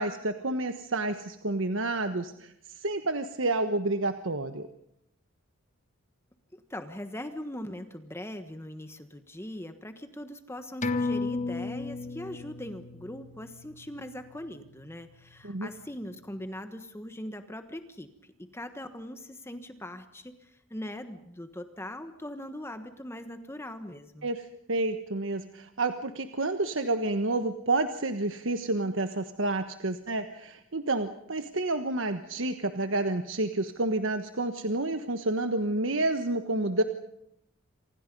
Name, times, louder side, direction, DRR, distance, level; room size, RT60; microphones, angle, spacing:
voice 1, 0.0-4.7 15.4-15.7 24.2-36.8, right 2 dB, 65° right, 8 dB, 1.3 m, -29 dB
voice 2, 6.5-24.3, left 1 dB, 10° left, 8 dB, 1.3 m, -41 dB
sound 1, 10.8-15.8 16.1-16.2, left 3 dB, 35° left, 1.3 m, -35 dB
28.5 x 26.0 x 5.4 m, 0.76 s
head